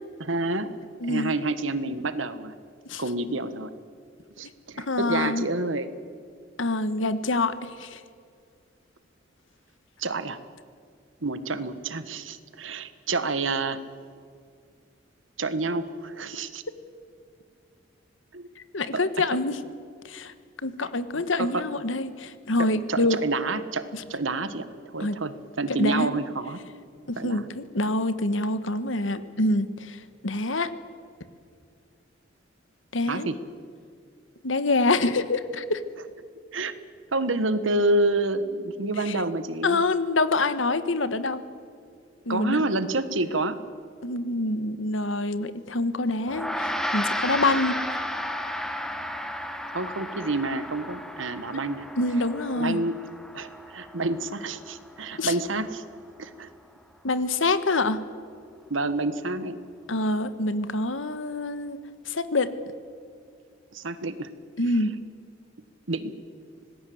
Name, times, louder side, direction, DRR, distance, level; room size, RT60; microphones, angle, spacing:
voice 1, 0.2-0.7 1.1-2.6 3.0-3.7 4.4-5.9 10.0-10.4 11.2-13.8 15.4-16.6 18.3-18.5 21.4-21.6 22.6-24.7 24.9-26.6 27.2-27.5 33.1-33.4 36.5-36.7 37.1-39.8 42.3-43.6 49.7-51.8 52.5-53.0 53.3-55.8 56.2-56.5 58.7-59.6 63.7-64.3 65.9-66.1, right 2 dB, 80° right, 12 dB, 1.5 m, -28 dB
voice 2, 1.0-1.4 2.9-3.0 4.8-5.5 6.6-8.0 18.6-19.6 20.0-20.3 20.6-23.2 23.9-24.0 25.0-25.2 25.7-26.1 27.1-30.7 32.9-33.3 34.4-35.8 39.0-39.2 39.6-41.4 42.3-42.6 44.0-47.8 52.0-52.8 55.2-55.3 57.0-58.0 59.9-61.8 62.0-62.5 64.6-64.9, left 2 dB, 80° left, 13 dB, 1.4 m, -26 dB
Gong, 46.3-55.9, equal, 5° left, 1.7 m, -33 dB
26.0 x 19.0 x 7.9 m, 2.2 s
head